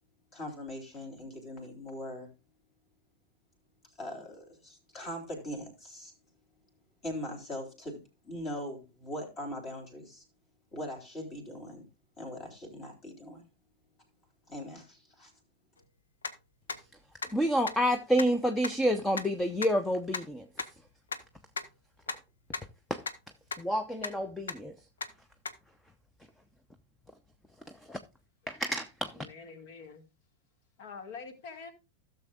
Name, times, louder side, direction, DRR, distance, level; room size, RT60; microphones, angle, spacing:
voice 1, 0.3-2.3 4.0-6.1 7.0-10.2 10.7-11.9 12.2-13.5 14.5-15.3, equal, 30° left, 3.7 m, -41 dB
sound 1, 16.2-16.3 16.7-16.8 17.2-17.3 17.7-17.8 18.2-18.3 18.6-18.7 19.1-19.3 19.6-19.7 20.1-20.2 20.6-20.7 21.1-21.2 21.6-21.7 22.1-22.2 22.5-22.6 23.0-23.1 23.5-23.6 24.0-24.1 24.5-24.6 25.0-25.1 25.5-25.6, left 4 dB, 70° left, 0.9 m, -34 dB
voice 2, 17.3-20.4 22.9-23.0 23.6-24.7 27.9-28.0 28.5-29.1, equal, 5° left, 0.7 m, -28 dB
voice 3, 29.1-30.0 30.8-31.7, left 5 dB, 50° left, 2.0 m, -45 dB
16.5 x 6.9 x 2.5 m
figure-of-eight pair, 90°, 0 cm